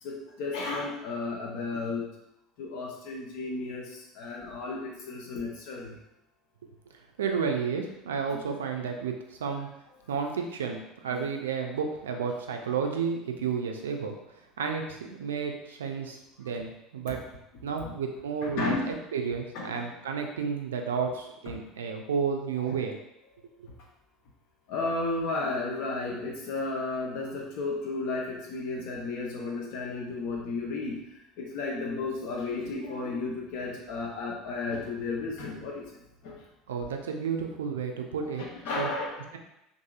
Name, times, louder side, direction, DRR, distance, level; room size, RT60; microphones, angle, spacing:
voice 1, 0.0-2.1 2.6-6.0 8.3-8.4 17.6-17.9 18.4-18.9 19.5-19.9 22.6-22.7 24.7-31.0 31.4-35.9 36.2-36.4 38.4-39.1, left 3 dB, 60° left, -2 dB, 0.7 m, -33 dB
voice 2, 7.2-9.7 10.1-14.1 14.6-17.2 17.6-23.0 23.6-23.7 36.7-38.4 38.8-38.9, right 6 dB, 75° right, 3 dB, 0.3 m, -32 dB
2.7 x 2.5 x 2.3 m, 0.87 s
figure-of-eight pair, 70°, 0 cm